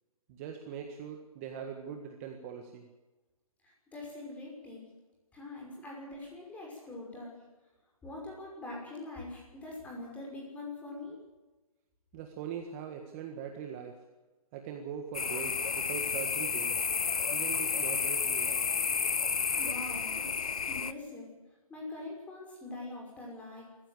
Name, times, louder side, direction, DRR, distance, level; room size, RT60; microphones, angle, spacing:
voice 1, 0.3-2.8 5.8-5.9 12.1-14.0 14.5-16.8 17.3-18.6, right 7 dB, 25° right, 4 dB, 1.7 m, -41 dB
voice 2, 3.6-4.8 5.3-7.4 8.0-11.2 19.6-21.3 21.7-23.7, left 2 dB, 10° left, -1 dB, 5.9 m, -43 dB
sound 1, 15.1-20.9, left 6 dB, 80° left, 1.1 m, -31 dB
23.0 x 15.0 x 8.0 m, 1.2 s
hypercardioid pair, 160°, 18 cm